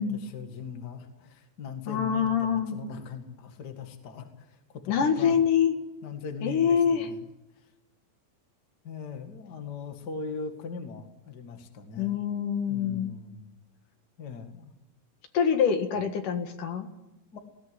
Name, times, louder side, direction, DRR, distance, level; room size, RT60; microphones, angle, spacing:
voice 1, 0.0-5.4 6.0-7.3 7.6-7.7 8.8-12.2 12.7-13.5 14.2-14.7 17.3-17.4, left 5 dB, 35° left, 5 dB, 2.1 m, -40 dB
voice 2, 1.9-2.8 4.9-5.8 6.4-7.1 12.0-13.1 15.3-16.9, left 7 dB, 65° left, 6 dB, 3.1 m, -25 dB
19.0 x 17.5 x 9.9 m, 0.96 s
omnidirectional pair, 4.2 m